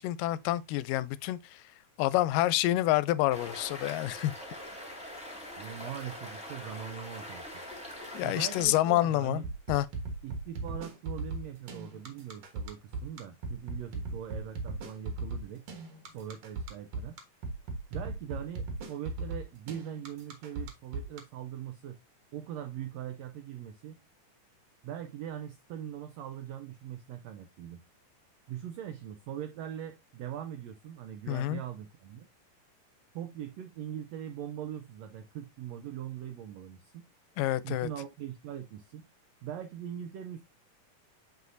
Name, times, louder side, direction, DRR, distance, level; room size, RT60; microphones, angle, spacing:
voice 1, 0.0-1.6 2.0-4.3 8.1-9.4 9.7-9.9 31.3-31.6 37.4-37.9, left 15 dB, 85° left, 2.2 m, -28 dB
sound 1, 3.3-8.6, left 1 dB, 5° right, 1.5 m, -43 dB
voice 2, 5.6-7.4 8.2-9.4 10.2-15.6 16.1-17.2 17.9-22.0 22.3-24.0 24.8-27.8 28.5-32.3 33.1-37.0 37.6-39.1 39.4-40.4, right 10 dB, 85° right, 1.5 m, -41 dB
sound 2, 9.4-21.2, right 3 dB, 55° right, 2.3 m, -37 dB
8.1 x 4.9 x 2.6 m
omnidirectional pair, 3.7 m